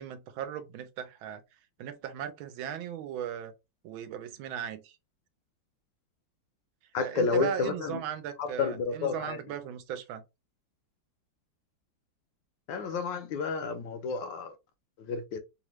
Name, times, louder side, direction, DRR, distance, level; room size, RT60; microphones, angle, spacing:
voice 1, 0.0-1.4 1.8-3.5 3.8-5.0 7.0-10.2, right 9 dB, 80° right, 1.4 m, -37 dB
voice 2, 6.9-8.0 8.4-9.4 12.7-14.6 15.0-15.4, left 4 dB, 75° left, 1.2 m, -31 dB
3.3 x 2.4 x 3.0 m
omnidirectional pair, 2.2 m